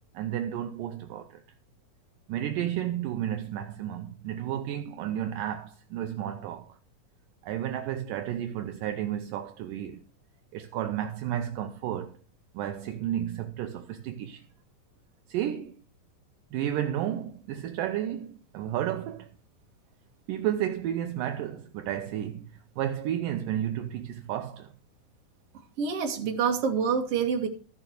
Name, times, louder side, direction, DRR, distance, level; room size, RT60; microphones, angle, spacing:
voice 1, 0.1-1.4 2.3-6.8 7.4-10.0 10.5-12.2 12.5-14.5 15.3-15.8 16.5-19.3 20.3-24.7, right 11 dB, 75° right, 2.2 m, -32 dB
voice 2, 25.8-27.5, right 6 dB, 45° right, 2.4 m, -26 dB
14.0 x 6.4 x 6.4 m
omnidirectional pair, 4.3 m